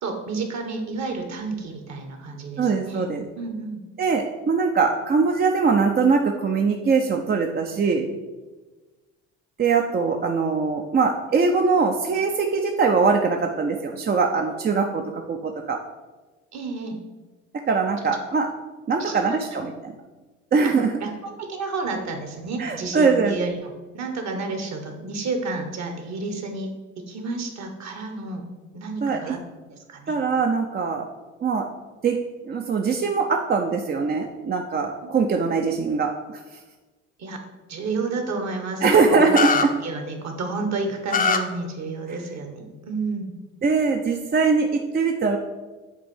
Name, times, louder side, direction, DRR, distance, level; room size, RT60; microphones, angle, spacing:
voice 1, 0.0-3.1 3.3-3.8 16.5-17.0 19.0-19.4 20.6-20.7 21.0-26.7 27.0-28.5 28.7-29.4 29.7-30.2 35.0-35.2 37.2-37.4 37.7-38.8 39.1-39.3 39.8-43.4, right 3 dB, 50° right, 5 dB, 1.3 m, -31 dB
voice 2, 2.6-3.3 4.0-8.1 9.6-15.8 17.7-18.5 18.9-19.9 20.5-20.9 22.6-23.3 29.0-29.4 30.1-31.0 31.4-31.7 32.0-32.2 32.4-36.6 38.8-39.7 42.1-42.2 43.6-45.4, right 4 dB, 25° right, 3 dB, 0.5 m, -22 dB
sound 1, 39.4-39.6 41.1-41.4, left 5 dB, 25° left, 0.6 m, -20 dB
7.3 x 2.6 x 5.4 m, 1.2 s
hypercardioid pair, 70°, 36 cm